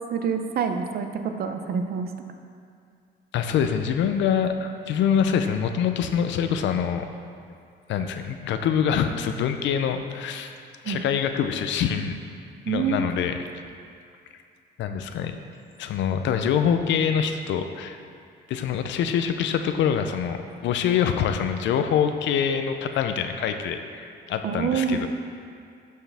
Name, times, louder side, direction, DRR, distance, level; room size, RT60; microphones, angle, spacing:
voice 1, 0.1-1.1 1.4-2.1 10.8-11.0 12.7-13.0 24.4-25.1, right 6 dB, 55° right, 7 dB, 0.6 m, -26 dB
voice 2, 3.3-7.1 7.9-10.5 10.8-12.2 12.7-13.4 14.8-15.4 15.8-18.0 18.5-25.1, left 8 dB, 85° left, 7 dB, 0.5 m, -25 dB
11.5 x 4.6 x 3.4 m, 2.4 s
cardioid pair, 130°, 19 cm